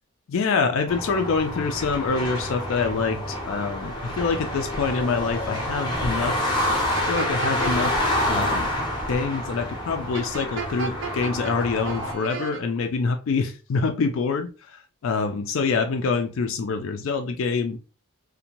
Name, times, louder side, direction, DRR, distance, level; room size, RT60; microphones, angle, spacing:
voice 1, 0.3-6.4 7.1-8.0 8.3-8.7 9.1-17.8, left 4 dB, 65° left, 5 dB, 0.3 m, -26 dB
sound 1, 0.9-12.1, left 1 dB, 20° left, 0.6 m, -28 dB
sound 2, 6.7-8.1 10.1-11.5 11.8-12.6, right 5 dB, 55° right, 0.5 m, -33 dB
2.6 x 2.1 x 2.9 m, 0.33 s
head